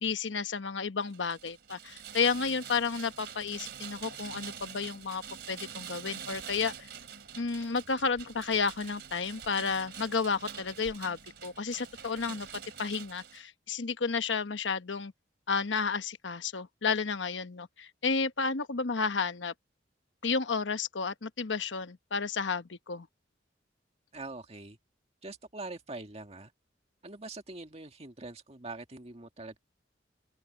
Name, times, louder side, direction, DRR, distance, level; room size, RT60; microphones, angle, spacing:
voice 1, 0.0-5.2 5.5-6.7 7.4-12.5 12.8-15.1 15.5-19.5 20.2-23.1, left 5 dB, 80° left, 1.0 m, -32 dB
Rain, 1.1-13.4, right 8 dB, 60° right, 3.0 m, -45 dB
voice 2, 24.1-24.8 25.2-26.5 27.0-29.6, right 2 dB, 35° right, 1.9 m, -43 dB
open air
head